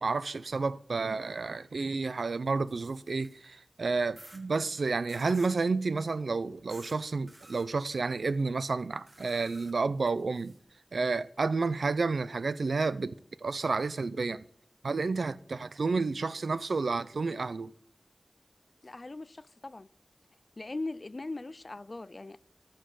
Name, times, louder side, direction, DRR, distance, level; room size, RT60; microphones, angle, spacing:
voice 1, 0.0-10.5 10.9-13.1 13.4-14.4 14.8-17.7, right 4 dB, 90° right, 0.5 m, -30 dB
sound 1, 2.5-3.5 4.2-4.4 5.1-5.6 6.7-7.0 7.3-7.7 9.1-10.6, right 1 dB, 35° right, 1.7 m, -53 dB
voice 2, 18.8-19.9 20.6-22.4, left 2 dB, 50° left, 0.4 m, -40 dB
14.0 x 6.5 x 3.9 m
wide cardioid pair, 60°, 0 cm